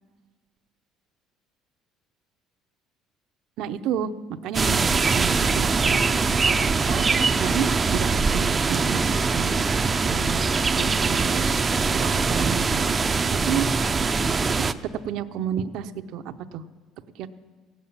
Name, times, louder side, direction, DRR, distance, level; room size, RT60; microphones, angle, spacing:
voice 1, 3.6-4.1 4.4-7.1 7.4-9.5 10.0-10.4 10.7-11.6 11.9-12.9 13.3-13.7 14.2-14.3 15.0-16.6 17.2-17.3, right 9 dB, 70° right, 9 dB, 0.6 m, -31 dB
sound 1, 4.5-14.7, right 4 dB, 20° right, 0.5 m, -22 dB
16.5 x 7.3 x 8.7 m, 1.4 s
cardioid pair, 125°, 0 cm